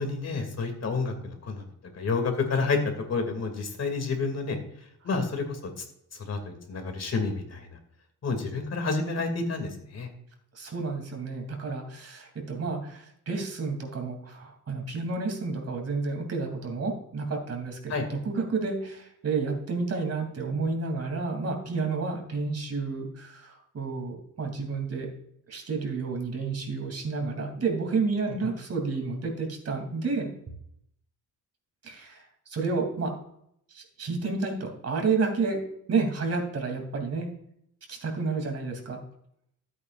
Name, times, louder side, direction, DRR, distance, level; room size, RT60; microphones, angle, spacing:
voice 1, 0.0-1.6 1.9-2.8 3.1-4.6 5.0-5.8 6.2-7.8 8.2-10.1 17.9-18.1 28.3-28.4, left 4 dB, 50° left, 4 dB, 2.5 m, -29 dB
voice 2, 10.5-25.1 25.5-30.3 31.8-33.1 33.7-35.6 35.9-37.3 37.9-39.0, right 4 dB, 50° right, 3 dB, 3.0 m, -30 dB
14.0 x 8.5 x 2.5 m, 0.70 s
wide cardioid pair, 125°, 32 cm